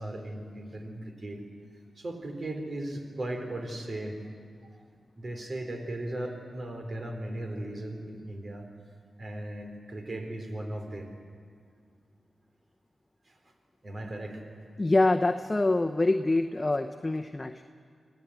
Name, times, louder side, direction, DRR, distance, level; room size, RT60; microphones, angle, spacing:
voice 1, 0.0-1.4 2.0-4.2 5.2-8.6 9.2-11.1 13.3-13.4 13.8-14.4, right 1 dB, 55° right, 4 dB, 3.8 m, -37 dB
voice 2, 14.8-17.6, left 2 dB, 30° left, 5 dB, 0.9 m, -25 dB
24.0 x 16.0 x 8.1 m, 2.1 s
cardioid pair, 45°, 0 cm